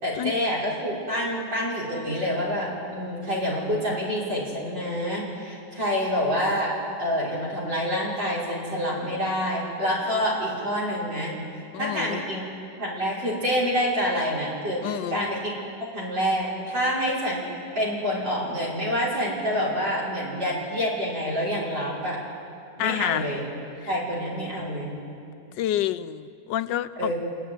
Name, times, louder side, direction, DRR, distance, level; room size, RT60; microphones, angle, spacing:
voice 1, 0.0-6.7 7.0-11.3 11.8-12.4 12.8-15.5 15.9-17.5 17.7-22.2 22.8-23.5 23.9-24.9 27.0-27.1, equal, 85° right, -6 dB, 6.2 m, -27 dB
voice 2, 11.7-12.2 14.8-15.3 22.8-23.3 23.8-23.9 25.6-27.1, left 12 dB, 90° left, 12 dB, 1.3 m, -28 dB
27.0 x 11.5 x 9.5 m, 2.6 s
omnidirectional pair, 1.9 m